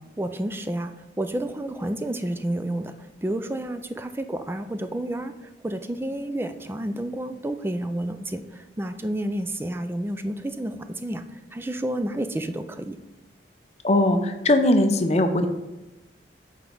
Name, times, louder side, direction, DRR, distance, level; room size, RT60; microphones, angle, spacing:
voice 1, 0.2-13.0, right 1 dB, 10° right, 9 dB, 0.3 m, -30 dB
voice 2, 13.8-15.5, left 1 dB, 35° left, 7 dB, 0.5 m, -20 dB
7.6 x 4.6 x 3.9 m, 0.99 s
head